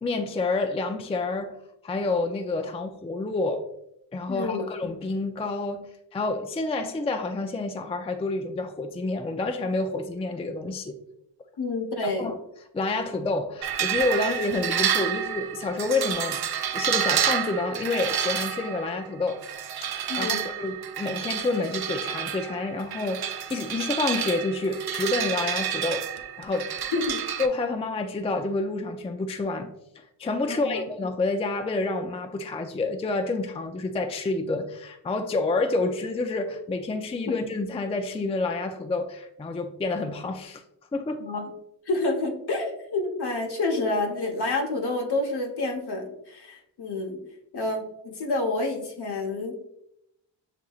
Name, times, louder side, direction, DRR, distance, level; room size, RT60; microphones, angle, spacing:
voice 1, 0.0-1.6 1.8-3.6 4.1-11.0 12.2-12.3 12.7-16.4 16.7-19.4 19.8-26.7 27.4-40.6 40.9-41.3, left 3 dB, 15° left, 0.4 m, -28 dB
voice 2, 4.3-4.7 11.6-12.3 20.1-20.5 26.9-27.2 30.5-30.8 41.2-41.5 41.9-47.2 47.5-49.6, left 2 dB, 60° left, 1.1 m, -28 dB
sound 1, 13.6-27.5, right 9 dB, 60° right, 0.6 m, -29 dB
7.4 x 2.8 x 2.4 m
cardioid pair, 65°, 44 cm